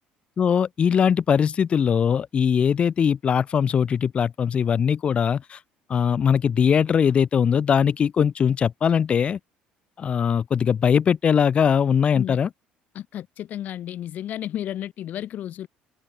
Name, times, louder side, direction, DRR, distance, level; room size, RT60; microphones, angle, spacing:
voice 1, 0.4-5.6 5.9-9.4 10.0-12.5, left 7 dB, 35° left, 0.5 m, -21 dB
voice 2, 13.0-15.7, left 11 dB, 55° left, 1.7 m, -32 dB
cardioid pair, 125°, 3 cm